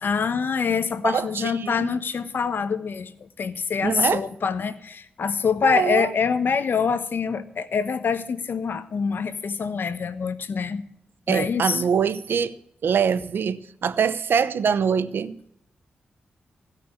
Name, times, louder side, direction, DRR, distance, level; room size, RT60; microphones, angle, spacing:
voice 1, 0.0-10.8 11.3-11.8, left 6 dB, 65° left, 1.1 m, -25 dB
voice 2, 1.0-1.9 3.8-4.2 5.6-6.1 11.3-12.5 12.8-15.4, right 7 dB, 75° right, 0.7 m, -24 dB
16.0 x 6.0 x 8.5 m
cardioid pair, 60°, 4 cm